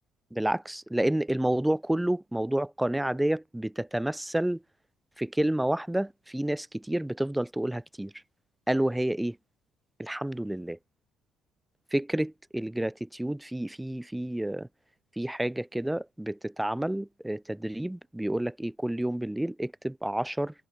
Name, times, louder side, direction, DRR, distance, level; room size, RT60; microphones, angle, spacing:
voice 1, 0.3-4.6 5.2-8.1 8.7-9.4 10.0-10.8 11.9-14.7 15.2-20.5, right 1 dB, 5° right, 6.3 m, -29 dB
supercardioid pair, 80°, 0 cm